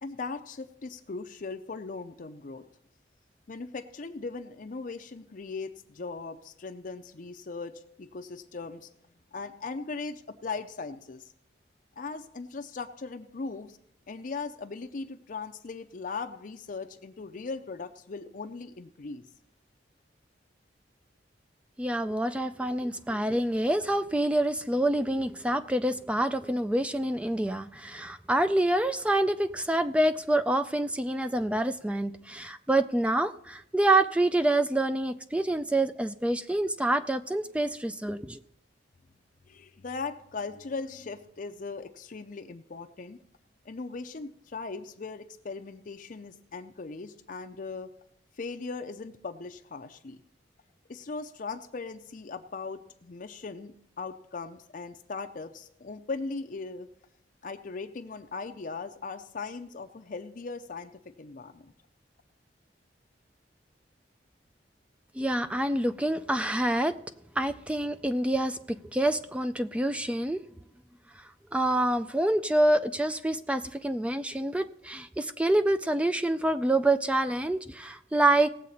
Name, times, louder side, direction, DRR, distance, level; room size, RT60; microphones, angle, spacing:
voice 1, 0.0-2.6 3.5-8.9 9.3-11.3 12.0-13.8 14.1-19.3 22.4-22.5 39.5-43.2 43.7-47.9 48.3-50.2 50.9-56.9 57.4-61.7, left 4 dB, 50° left, 6 dB, 0.5 m, -39 dB
voice 2, 21.8-38.4 65.2-66.9 67.4-70.4 71.5-78.5, right 1 dB, 5° right, 10 dB, 0.3 m, -27 dB
18.0 x 7.5 x 4.2 m, 0.75 s
head